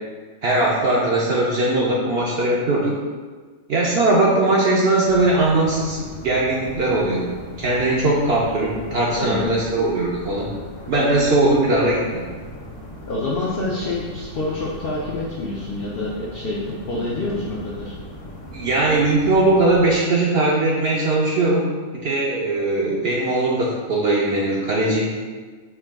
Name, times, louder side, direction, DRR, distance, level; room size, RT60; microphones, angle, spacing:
voice 1, 0.4-3.0 3.7-7.2 7.6-10.5 10.9-12.3 18.5-21.7 21.9-25.1, right 2 dB, 60° right, -4 dB, 0.7 m, -20 dB
sound 1, 5.0-20.0, equal, 85° left, 1.3 m, -38 dB
voice 2, 13.1-17.9, left 2 dB, 65° left, -6 dB, 0.6 m, -27 dB
4.5 x 2.3 x 3.4 m, 1.4 s
omnidirectional pair, 1.5 m